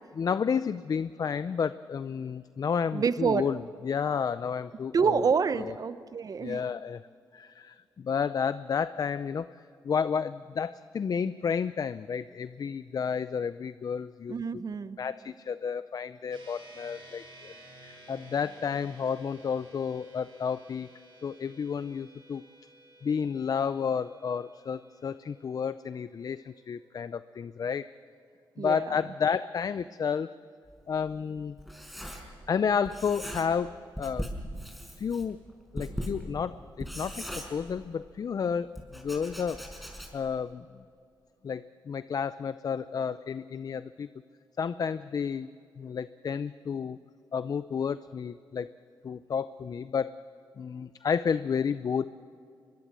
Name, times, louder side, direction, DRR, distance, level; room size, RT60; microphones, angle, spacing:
voice 1, 0.1-5.2 5.6-5.7 6.4-7.0 7.3-9.5 9.8-14.4 15.0-17.5 17.8-20.9 21.2-22.4 23.0-27.9 28.6-30.4 30.9-31.6 32.5-34.3 35.0-35.4 35.7-39.7 40.1-40.7 41.4-44.1 44.6-45.5 45.8-47.0 47.3-48.7 49.0-50.2 50.6-52.1, left 6 dB, 50° left, 14 dB, 0.5 m, -31 dB
voice 2, 2.9-3.5 4.9-6.6 14.3-15.0 28.6-28.9, right 5 dB, 50° right, 13 dB, 0.9 m, -27 dB
sound 1, 16.3-29.9, right 1 dB, 70° right, 7.1 m, -55 dB
Writing, 30.7-32.6 32.8-33.7 34.0-38.1 38.8-40.4, equal, ahead, 5.0 m, -39 dB
23.0 x 22.5 x 7.6 m, 2.4 s
cardioid pair, 80°, 8 cm